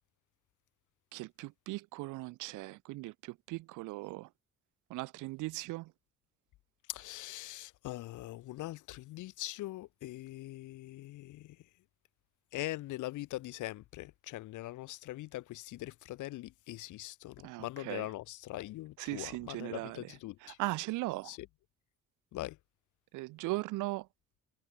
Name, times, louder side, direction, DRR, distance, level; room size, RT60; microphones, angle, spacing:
voice 1, 1.1-4.3 4.9-5.9 17.4-18.1 19.0-21.4 23.1-24.1, right 20 dB, 85° right, 0.5 m, -39 dB
voice 2, 6.9-11.6 12.5-20.6 21.3-21.4 22.3-22.6, left 17 dB, 80° left, 0.7 m, -42 dB
cardioid pair, 90°, 30 cm